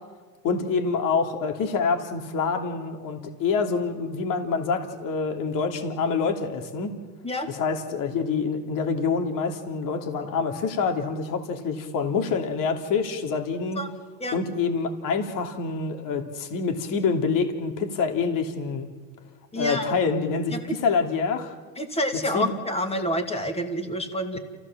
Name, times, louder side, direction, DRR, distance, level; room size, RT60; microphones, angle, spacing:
voice 1, 0.4-6.9 7.6-13.8 14.3-18.9 19.5-21.5 22.3-22.5, left 5 dB, 45° left, 5 dB, 3.2 m, -26 dB
voice 2, 19.5-20.0 20.5-20.7 21.8-24.4, equal, 15° left, 5 dB, 2.7 m, -28 dB
28.5 x 15.5 x 7.5 m, 1.4 s
supercardioid pair, 120°, 46 cm